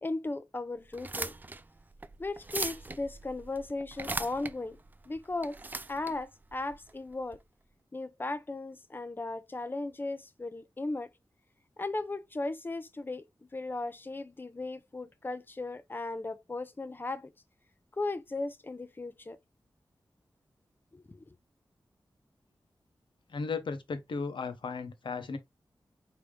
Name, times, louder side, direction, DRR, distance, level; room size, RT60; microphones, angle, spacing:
voice 1, 0.0-1.3 2.2-4.8 5.1-5.6 5.9-7.4 7.9-11.1 11.8-17.3 17.9-19.4 20.9-21.2, left 2 dB, 25° left, 0.6 m, -36 dB
sound 1, 0.9-7.4, right 2 dB, 20° right, 0.3 m, -40 dB
voice 2, 23.3-25.4, left 4 dB, 90° left, 0.8 m, -35 dB
4.9 x 2.8 x 3.3 m
wide cardioid pair, 120°, 8 cm